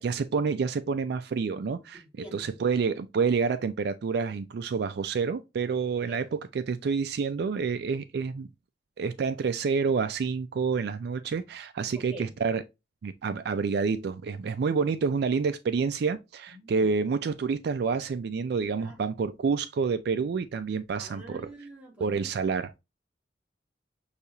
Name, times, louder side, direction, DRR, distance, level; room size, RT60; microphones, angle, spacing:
voice 1, 0.0-2.0 2.3-8.5 9.0-12.6 13.0-21.4 22.0-22.7, right 5 dB, 60° right, 0.3 m, -28 dB
voice 2, 1.9-2.6 6.1-6.2 11.9-12.3 16.5-16.9 18.8-19.1 21.0-22.7, right 1 dB, 5° right, 1.6 m, -46 dB
6.6 x 2.4 x 2.8 m
head